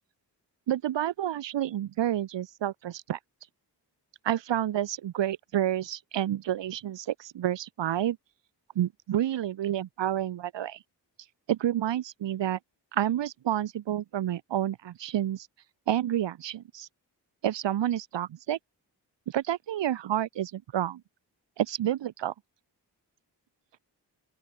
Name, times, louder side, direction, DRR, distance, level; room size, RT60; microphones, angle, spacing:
voice 1, 0.7-3.2 4.2-8.2 8.7-10.8 11.5-12.6 12.9-15.5 15.9-16.9 17.4-18.6 19.3-21.0 21.6-22.3, right 11 dB, 90° right, 1.4 m, -29 dB
open air
cardioid pair, 60°, 42 cm